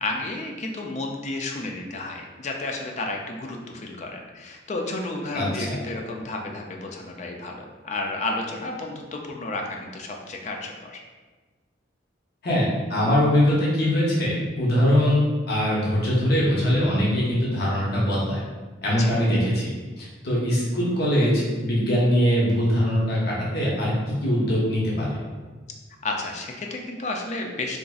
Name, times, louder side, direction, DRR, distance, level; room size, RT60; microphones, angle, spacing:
voice 1, 0.0-7.6 7.8-11.0 19.0-19.1 26.0-27.8, left 2 dB, 35° left, 2 dB, 0.3 m, -32 dB
voice 2, 5.3-5.8 12.4-18.4 18.8-23.9 24.2-25.2, equal, 55° left, -6 dB, 0.8 m, -22 dB
3.9 x 2.5 x 2.3 m, 1.3 s
head